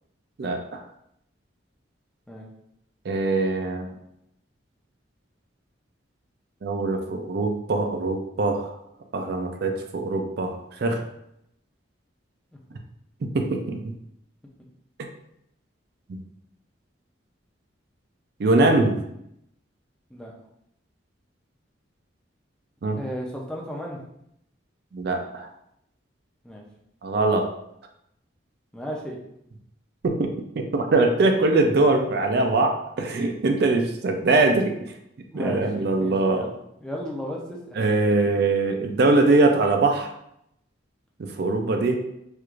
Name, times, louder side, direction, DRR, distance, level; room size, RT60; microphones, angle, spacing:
voice 1, 0.4-0.8 3.1-3.9 6.6-8.7 9.1-11.0 13.2-13.9 18.4-19.0 22.8-23.0 24.9-25.5 27.0-27.5 30.0-30.3 30.6-34.7 35.3-36.5 37.8-40.1 41.2-42.0, right 2 dB, 55° right, 4 dB, 0.4 m, -22 dB
voice 2, 23.0-24.0 26.4-26.6 28.7-29.2 35.3-37.8, equal, 5° left, -2 dB, 0.5 m, -34 dB
4.5 x 2.5 x 2.4 m, 0.77 s
head